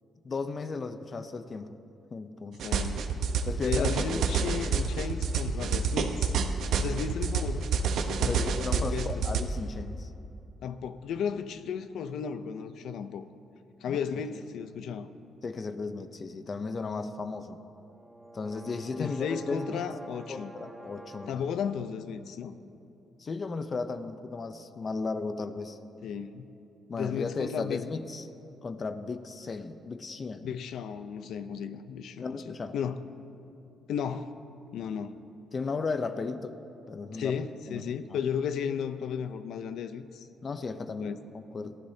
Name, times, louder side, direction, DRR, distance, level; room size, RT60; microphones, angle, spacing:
voice 1, 0.2-1.8 2.1-2.6 3.4-4.2 6.9-7.0 8.1-10.1 13.9-14.0 15.4-17.6 18.3-19.9 20.3-21.4 23.2-25.8 26.9-28.3 28.6-30.5 32.2-32.7 35.5-36.5 36.9-37.4 37.7-37.8 38.1-38.2 40.4-41.8, left 4 dB, 40° left, 9 dB, 0.7 m, -35 dB
voice 2, 2.6-3.2 3.6-6.3 6.8-7.7 8.1-9.2 10.6-13.3 13.8-15.1 19.0-20.5 21.3-22.5 26.0-26.5 26.9-27.8 30.4-33.0 33.9-34.3 34.7-35.2 37.1-40.3 41.0-41.2, left 7 dB, 75° left, 11 dB, 0.7 m, -34 dB
sound 1, 2.6-9.4, right 5 dB, 75° right, 1.0 m, -28 dB
sound 2, 17.8-21.7, right 2 dB, 15° right, 1.6 m, -48 dB
23.5 x 15.0 x 2.8 m, 2.8 s
cardioid pair, 90°, 0 cm